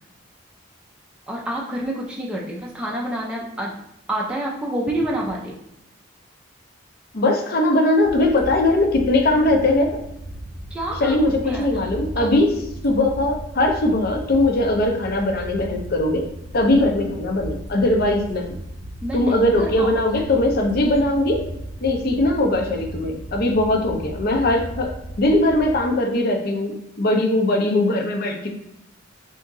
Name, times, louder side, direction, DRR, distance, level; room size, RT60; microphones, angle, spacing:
voice 1, 1.3-3.7 4.1-5.5 10.7-11.2 11.5-11.7 12.2-12.3 19.0-20.0, right 1 dB, 5° right, -3 dB, 0.4 m, -28 dB
voice 2, 7.1-10.0 11.0-12.5 12.8-16.2 16.5-18.4 19.1-21.4 21.8-24.9 25.2-28.5, left 1 dB, 50° left, 2 dB, 0.5 m, -20 dB
sound 1, 8.0-25.8, right 1 dB, 45° right, 0.7 m, -36 dB
2.8 x 2.6 x 3.6 m, 0.83 s
head